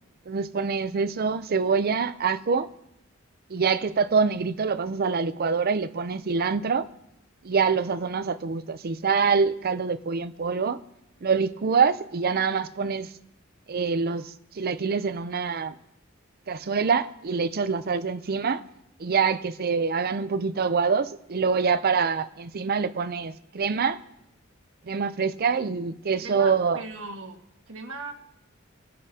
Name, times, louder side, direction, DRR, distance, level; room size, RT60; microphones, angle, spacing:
voice 1, 0.3-2.7 3.5-6.9 7.4-10.8 11.2-13.1 13.7-15.7 16.5-18.6 19.0-24.0 24.8-26.8, right 5 dB, 50° right, 0.5 m, -25 dB
voice 2, 26.2-28.1, right 3 dB, 70° right, 1.7 m, -39 dB
25.0 x 8.4 x 2.8 m
head